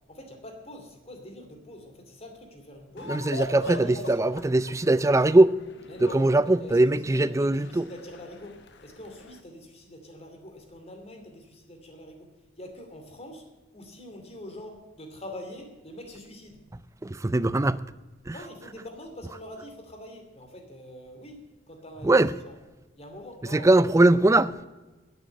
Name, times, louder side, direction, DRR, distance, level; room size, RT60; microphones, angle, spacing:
voice 1, 0.1-3.2 3.5-4.5 5.9-13.5 13.7-16.6 18.3-22.1 22.5-22.6 22.9-23.7, left 1 dB, 35° left, 2.7 m, -44 dB
sound 1, 3.0-9.4, left 2 dB, 60° left, 1.2 m, -42 dB
voice 2, 3.1-5.6 6.0-7.9 17.0-17.8 18.3-18.4 22.0-22.3 23.5-24.7, right 2 dB, 15° right, 0.4 m, -21 dB
10.5 x 9.0 x 8.4 m
head